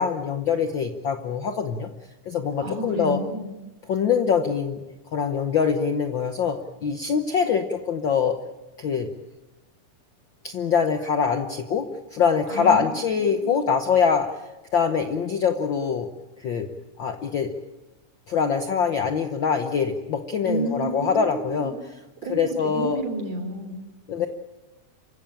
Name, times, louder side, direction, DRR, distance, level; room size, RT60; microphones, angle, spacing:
voice 1, 0.0-1.9 2.3-3.2 3.9-4.8 5.1-8.4 8.8-9.1 10.4-16.1 16.4-16.7 17.0-17.5 18.3-21.7 22.3-23.0 24.1-24.3, left 6 dB, 90° left, 6 dB, 1.0 m, -24 dB
voice 2, 2.6-3.5 12.5-13.5 20.4-21.7 22.2-23.8, right 2 dB, 55° right, 6 dB, 4.8 m, -31 dB
27.5 x 16.0 x 8.8 m, 1.1 s
omnidirectional pair, 3.7 m